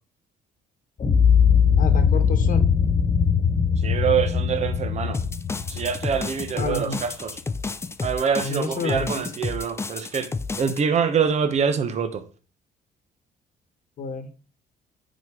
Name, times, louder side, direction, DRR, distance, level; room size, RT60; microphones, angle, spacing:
sound 1, 1.0-7.1, left 6 dB, 35° left, 1.4 m, -21 dB
voice 1, 1.7-2.7 6.6-7.0 8.4-9.3 14.0-14.3, left 3 dB, 55° left, 1.2 m, -30 dB
voice 2, 3.8-5.2 5.7-7.4 8.0-10.3 10.6-12.2, right 7 dB, 40° right, 1.1 m, -25 dB
sound 2, 5.1-10.8, left 4 dB, 15° left, 0.5 m, -31 dB
9.3 x 4.2 x 4.9 m
cardioid pair, 115°, 17 cm